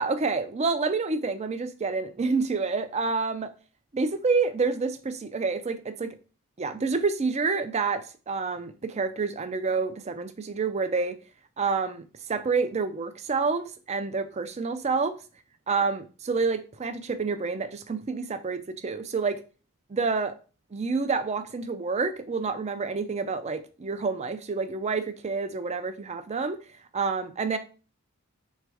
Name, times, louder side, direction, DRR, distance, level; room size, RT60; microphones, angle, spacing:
voice 1, 0.0-3.5 3.9-6.2 6.6-11.2 11.6-12.0 12.3-15.1 15.7-19.4 19.9-20.3 20.7-26.6 26.9-27.6, right 4 dB, 30° right, 0.4 m, -28 dB
3.4 x 3.2 x 4.7 m
head